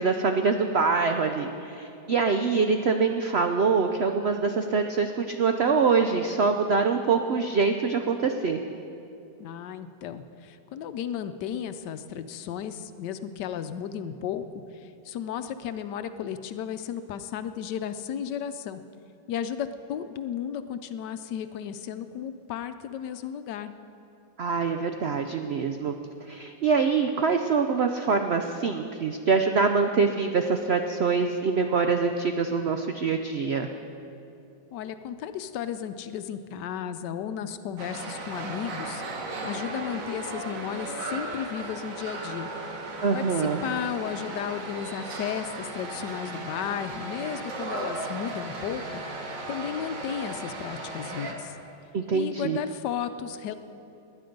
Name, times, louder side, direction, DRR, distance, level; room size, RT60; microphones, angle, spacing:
voice 1, 0.0-8.6 24.4-25.9 26.3-33.7 43.0-43.6 51.9-52.6, right 5 dB, 80° right, 6 dB, 0.5 m, -24 dB
voice 2, 9.4-14.4 14.7-18.8 19.3-23.7 34.7-39.0 39.4-42.5 43.1-49.0 49.5-51.6 52.1-53.5, left 9 dB, 80° left, 11 dB, 1.2 m, -34 dB
sound 1, 37.8-51.3, right 2 dB, 50° right, 1.7 m, -36 dB
19.0 x 10.5 x 5.2 m, 2.7 s
omnidirectional pair, 1.9 m